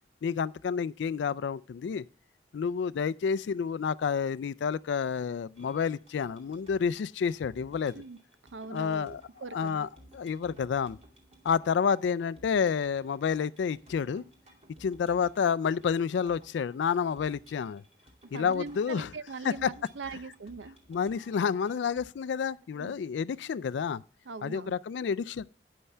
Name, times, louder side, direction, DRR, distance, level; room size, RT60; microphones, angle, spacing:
voice 1, 0.2-2.0 2.5-7.9 8.7-9.2 9.5-11.0 11.4-14.2 14.8-17.8 18.3-19.1 19.4-19.7 20.9-24.0 24.4-25.4, left 6 dB, 75° left, 0.3 m, -29 dB
sound 1, 5.6-22.1, right 1 dB, 35° right, 2.4 m, -58 dB
voice 2, 8.5-9.9 18.3-20.8 22.7-23.0 24.3-24.7, right 4 dB, 90° right, 0.6 m, -41 dB
11.0 x 9.6 x 3.3 m
head